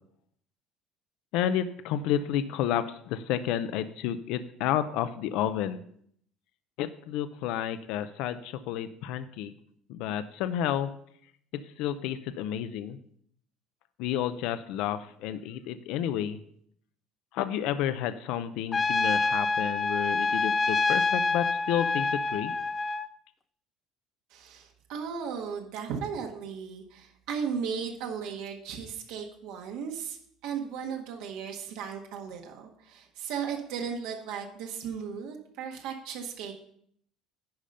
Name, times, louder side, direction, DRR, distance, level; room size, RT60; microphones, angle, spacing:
voice 1, 1.3-5.8 6.8-9.5 9.9-10.9 11.8-13.0 14.0-16.4 17.3-22.5, left 10 dB, 65° left, 11 dB, 0.6 m, -30 dB
Trumpet, 18.7-23.1, left 3 dB, 20° left, 0.3 m, -27 dB
voice 2, 24.3-36.5, right 7 dB, 75° right, 1 dB, 1.6 m, -36 dB
10.5 x 5.1 x 5.5 m, 0.65 s
cardioid pair, 165°, 0 cm